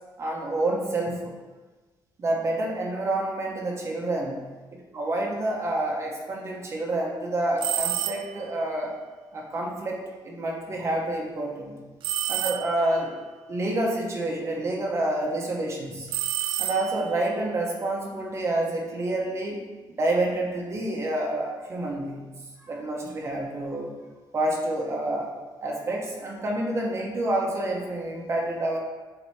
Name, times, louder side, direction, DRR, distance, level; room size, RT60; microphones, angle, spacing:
voice 1, 0.2-1.3 2.2-4.5 4.9-9.0 9.3-11.8 12.3-13.1 13.5-16.1 16.6-19.6 20.0-22.3 22.6-23.9 24.3-25.3 25.6-28.8, right 1 dB, 35° right, -1 dB, 1.2 m, -28 dB
sound 1, 7.6-8.5 12.0-13.0 16.1-17.2, right 10 dB, 80° right, 0.4 m, -29 dB
7.8 x 3.0 x 4.4 m, 1.3 s
cardioid pair, 155°, 8 cm